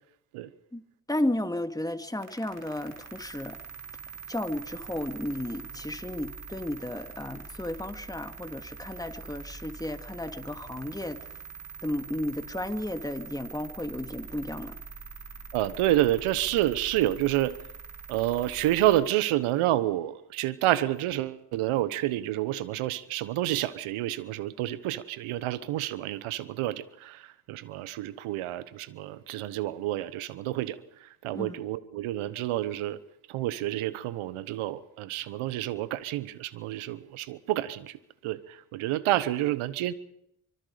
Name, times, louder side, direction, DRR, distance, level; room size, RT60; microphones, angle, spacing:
voice 1, 1.1-3.6 4.3-11.3 11.8-14.7 31.3-31.6, left 1 dB, 5° left, 8 dB, 2.0 m, -33 dB
sound 1, 2.2-19.0, right 5 dB, 35° right, 6.4 m, -44 dB
voice 2, 15.5-17.5 18.1-33.0 33.3-39.9, right 14 dB, 75° right, 17 dB, 1.2 m, -29 dB
24.5 x 22.5 x 5.1 m, 0.78 s
hypercardioid pair, 40°, 50 cm